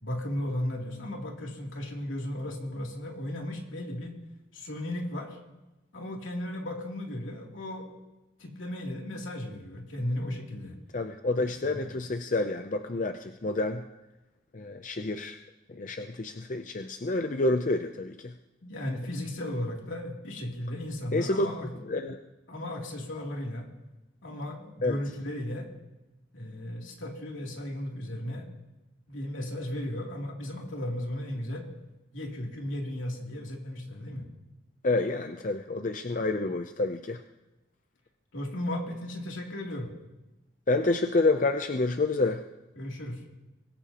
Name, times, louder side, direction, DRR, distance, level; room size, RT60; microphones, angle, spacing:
voice 1, 0.0-4.1 4.5-5.4 5.9-7.9 8.4-10.8 11.4-11.9 18.6-21.7 22.5-23.7 24.2-25.7 26.3-28.5 29.1-31.7 32.1-34.2 38.3-39.9 42.8-43.2, left 1 dB, 75° left, -1 dB, 3.0 m, -35 dB
voice 2, 10.9-13.8 14.5-15.4 15.7-18.3 21.1-21.5 21.9-22.2 24.8-25.0 34.8-37.2 40.7-42.4, left 2 dB, 40° left, 7 dB, 0.5 m, -28 dB
23.5 x 18.5 x 3.0 m, 1.0 s
head